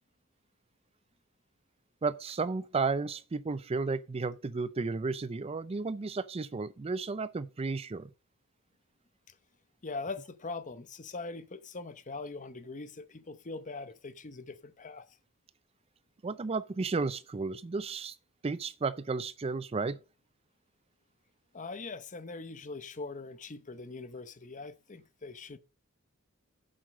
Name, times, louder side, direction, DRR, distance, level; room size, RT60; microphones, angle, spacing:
voice 1, 2.0-8.1 16.2-18.1 18.4-20.0, right 4 dB, 25° right, 0.4 m, -33 dB
voice 2, 9.8-15.1 21.5-25.6, left 3 dB, 35° left, 0.8 m, -42 dB
7.8 x 7.7 x 5.1 m
head